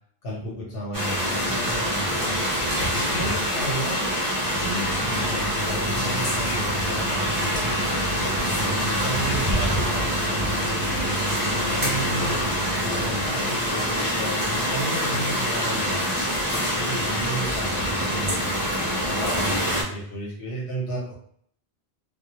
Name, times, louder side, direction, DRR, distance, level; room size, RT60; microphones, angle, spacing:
voice 1, 0.2-4.0 4.6-7.7 8.2-18.7 19.0-21.2, right 1 dB, 70° left, -3 dB, 1.1 m, -33 dB
sound 1, 0.9-19.8, equal, 20° right, 0.7 m, -25 dB
sound 2, 2.9-3.7 4.0-4.2 4.7-6.0 6.3-12.0 12.4-16.6 16.9-17.6, left 3 dB, 55° left, 0.8 m, -42 dB
sound 3, 4.5-13.3, right 2 dB, 60° right, 0.6 m, -34 dB
2.3 x 2.2 x 2.8 m, 0.63 s
omnidirectional pair, 1.1 m